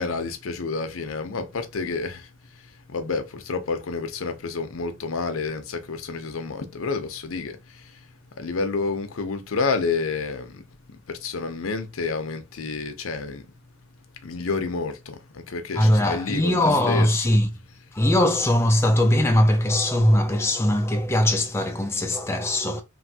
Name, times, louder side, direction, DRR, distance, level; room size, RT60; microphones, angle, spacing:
voice 1, 0.0-13.5 14.1-17.4 17.9-18.0, left 4 dB, 75° left, 0.6 m, -30 dB
voice 2, 15.8-17.5 17.9-22.8, left 1 dB, 10° left, 0.4 m, -20 dB
3.1 x 2.5 x 2.8 m
head